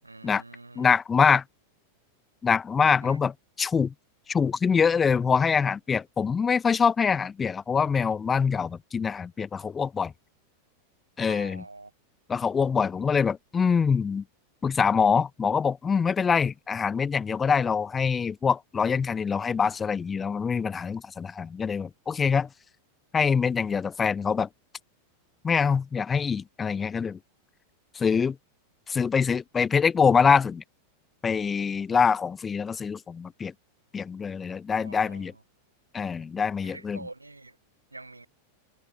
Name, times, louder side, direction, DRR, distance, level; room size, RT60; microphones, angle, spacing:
voice 1, 0.0-0.9 3.0-3.2 11.3-11.9 34.8-35.4 36.6-37.6 37.9-38.3, right 2 dB, 80° right, 7.8 m, -45 dB
voice 2, 0.8-1.4 2.4-3.9 4.3-10.1 11.2-11.6 12.3-14.2 14.6-22.5 23.1-24.5 25.4-27.2 27.9-28.4 28.9-30.6 31.2-33.5 33.9-35.3 35.9-37.0, left 6 dB, 20° left, 0.9 m, -24 dB
figure-of-eight pair, 90°, 0 cm